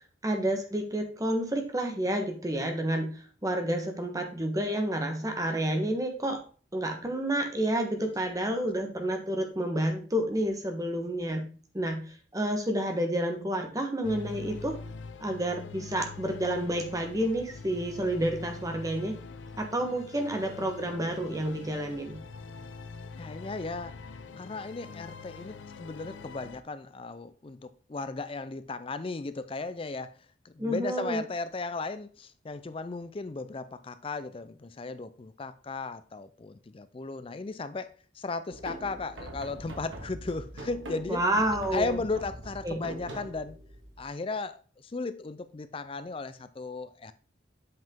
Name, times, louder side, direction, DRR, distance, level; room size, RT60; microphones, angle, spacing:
voice 1, 0.2-6.4 6.7-11.5 11.7-14.8 15.2-19.2 19.6-22.2 30.6-31.2 41.1-42.0 42.6-42.8, right 1 dB, 20° right, 1.2 m, -30 dB
sound 1, 14.0-26.6, left 4 dB, 80° left, 0.6 m, -44 dB
voice 2, 23.2-23.9 24.4-41.2 41.7-43.6 44.0-47.1, left 3 dB, 30° left, 0.4 m, -36 dB
sound 2, 38.5-44.0, right 1 dB, 85° right, 1.8 m, -43 dB
7.9 x 5.5 x 3.6 m
head